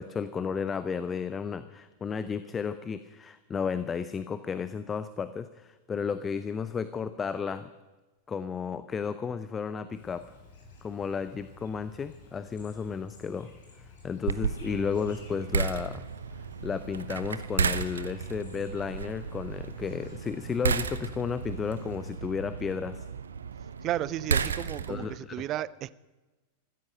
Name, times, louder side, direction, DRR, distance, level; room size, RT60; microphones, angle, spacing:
voice 1, 0.0-7.7 8.3-10.2 10.8-13.5 13.8-16.0 16.6-23.1 24.9-25.4, left 6 dB, 20° left, 0.6 m, -33 dB
Chirp tweet, 9.9-22.2, left 3 dB, 65° left, 6.7 m, -52 dB
sound 1, 14.3-25.2, right 6 dB, 70° right, 0.7 m, -33 dB
voice 2, 23.8-25.9, right 13 dB, 35° right, 0.5 m, -33 dB
15.0 x 13.0 x 6.6 m
figure-of-eight pair, 90°, 0 cm